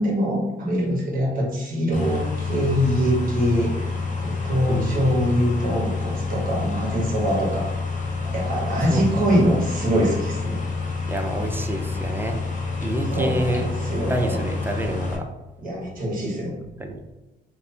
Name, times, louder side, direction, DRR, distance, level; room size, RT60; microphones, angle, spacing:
voice 1, 0.0-3.9 4.2-7.7 8.3-10.6 13.1-14.4 15.6-16.6, equal, 45° right, -3 dB, 1.2 m, -23 dB
sound 1, 1.9-15.2, left 4 dB, 40° left, 0.6 m, -28 dB
voice 2, 4.7-5.0 8.9-9.2 9.5-9.7 11.1-12.4 12.8-15.2 16.8-17.0, right 1 dB, 10° right, 4 dB, 0.3 m, -28 dB
3.0 x 2.0 x 2.7 m, 1.0 s
cardioid pair, 90°, 20 cm